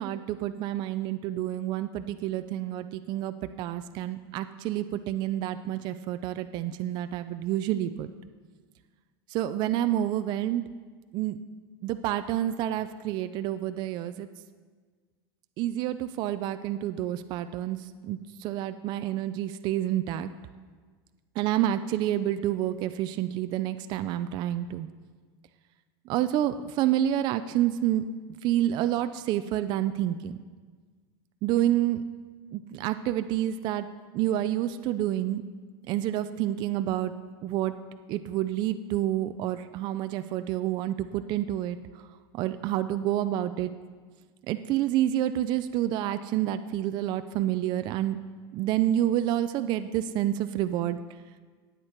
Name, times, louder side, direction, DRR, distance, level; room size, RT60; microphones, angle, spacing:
voice 1, 0.0-8.1 9.3-10.6 11.1-11.4 11.8-14.3 15.6-17.8 18.0-20.3 21.4-24.9 26.1-28.0 28.4-30.4 31.4-32.0 32.5-33.9 34.1-35.4 35.9-37.1 37.4-37.7 38.1-41.8 42.3-43.7 44.5-48.2 48.5-51.0, right 12 dB, 35° right, 11 dB, 0.4 m, -28 dB
19.0 x 8.1 x 4.4 m, 1.5 s
supercardioid pair, 165°, 13 cm